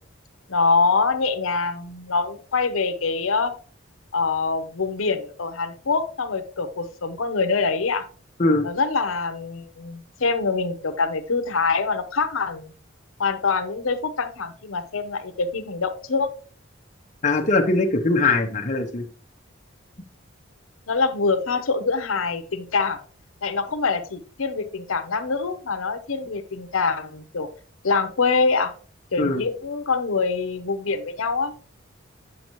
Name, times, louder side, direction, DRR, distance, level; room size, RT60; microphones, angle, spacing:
voice 1, 0.5-3.5 4.1-8.0 8.6-12.7 13.2-16.3 20.9-23.0 23.4-27.5 27.8-28.7 29.1-31.6, left 4 dB, 80° left, 8 dB, 0.7 m, -24 dB
voice 2, 17.2-19.0 29.2-29.4, left 2 dB, 35° left, 3 dB, 0.8 m, -21 dB
8.7 x 6.4 x 3.0 m, 0.40 s
head